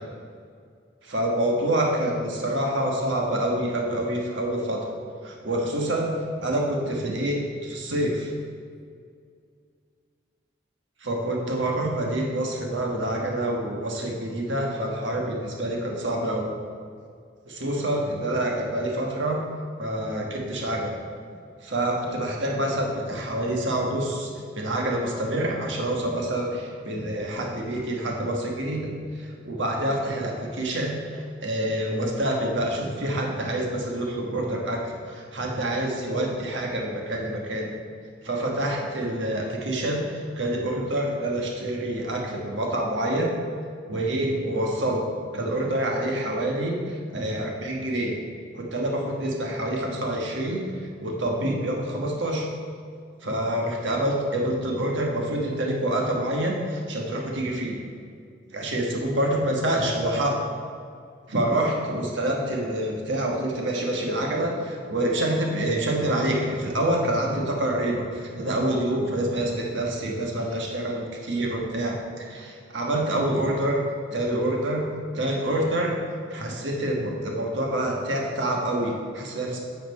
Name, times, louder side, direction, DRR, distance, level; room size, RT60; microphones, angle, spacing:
voice 1, 1.0-4.8 5.2-6.1 6.4-8.3 11.0-16.5 17.5-19.4 19.8-20.9 21.6-28.9 29.2-37.7 38.2-43.4 43.9-45.0 45.3-48.2 48.5-50.6 51.0-52.5 53.2-57.8 58.5-60.4 61.3-73.8 74.1-74.8 75.1-76.0 76.3-79.6, right 1 dB, 80° right, 0 dB, 1.2 m, -27 dB
8.2 x 4.3 x 5.2 m, 2.2 s
head